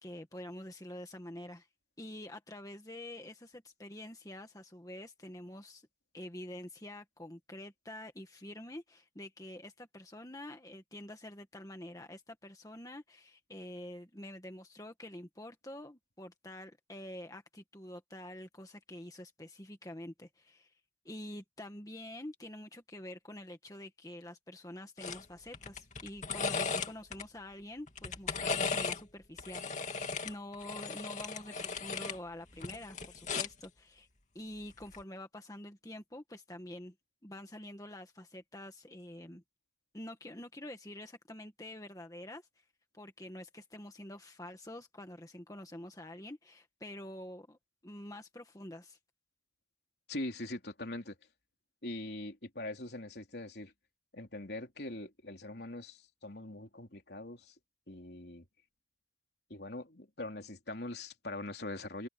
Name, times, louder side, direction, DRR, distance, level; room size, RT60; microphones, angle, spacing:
voice 1, 0.0-1.7 2.0-5.9 6.1-20.7 21.1-34.1 34.4-36.9 37.2-39.4 39.9-42.5 42.9-47.6 47.8-49.0, left 1 dB, 20° left, 1.7 m, -47 dB
sound 1, 25.0-25.2 25.5-27.2 27.9-29.0 29.4-32.2 32.5-33.6 34.8-35.0, left 4 dB, 40° left, 2.6 m, -36 dB
voice 2, 50.1-51.2 51.8-53.7 54.1-57.5 57.9-58.4 59.5-62.1, left 2 dB, 60° left, 3.6 m, -42 dB
head